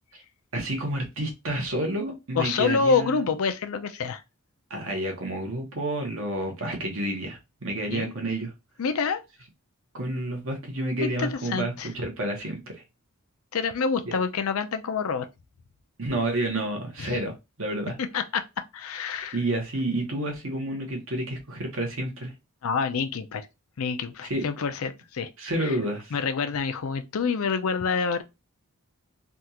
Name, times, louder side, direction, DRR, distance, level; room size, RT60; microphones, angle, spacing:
voice 1, 0.5-3.2 4.7-8.5 9.9-12.8 14.1-14.2 16.0-17.3 17.6-18.0 19.3-22.3 24.3-24.4 25.4-26.2, right 1 dB, 60° right, 1.2 m, -30 dB
voice 2, 2.4-4.2 7.9-8.1 8.8-9.2 11.2-11.9 13.5-15.3 17.0-17.2 18.1-18.4 18.7-19.4 22.6-23.5 23.8-25.3 25.6-25.7 26.1-28.2, left 5 dB, 70° left, 0.5 m, -27 dB
3.5 x 2.4 x 2.8 m
head